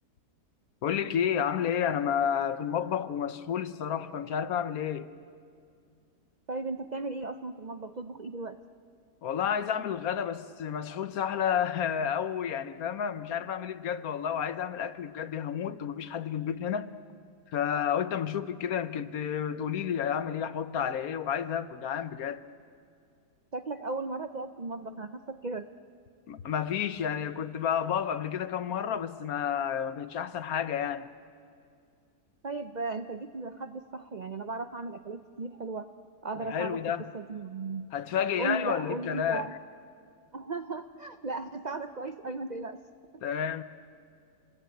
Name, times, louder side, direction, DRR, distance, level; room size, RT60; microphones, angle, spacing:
voice 1, 0.8-5.1 9.2-16.9 17.5-22.4 26.3-31.1 36.5-37.1 37.9-39.5 43.2-43.6, left 8 dB, 65° left, 1.2 m, -31 dB
voice 2, 6.5-8.6 23.5-25.7 32.4-35.9 36.2-36.8 37.1-37.9 38.4-39.5 40.3-42.8 43.1-43.4, right 3 dB, 85° right, 0.3 m, -36 dB
28.0 x 20.5 x 9.1 m
omnidirectional pair, 1.8 m